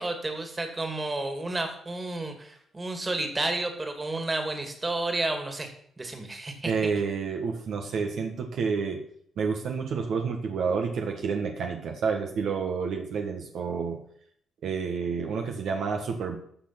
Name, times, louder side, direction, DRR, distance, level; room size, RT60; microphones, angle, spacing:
voice 1, 0.0-5.7 6.0-6.9, right 2 dB, 25° right, 6 dB, 2.6 m, -31 dB
voice 2, 6.6-9.0 9.4-14.0 14.6-16.4, right 5 dB, 70° right, 3 dB, 1.5 m, -29 dB
13.5 x 6.7 x 5.9 m, 0.65 s
cardioid pair, 90°, 0 cm